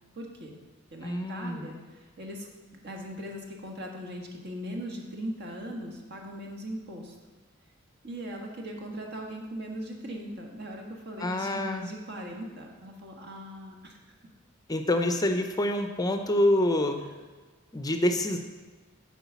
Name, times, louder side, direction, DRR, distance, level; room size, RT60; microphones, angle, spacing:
voice 1, 0.1-0.5 0.9-2.5 2.8-7.1 8.0-14.0, equal, 55° right, 1 dB, 1.5 m, -39 dB
voice 2, 1.0-1.7 11.2-11.9 14.7-17.0 17.7-18.4, left 1 dB, 20° left, 6 dB, 0.5 m, -26 dB
8.1 x 4.7 x 7.0 m, 1.3 s
head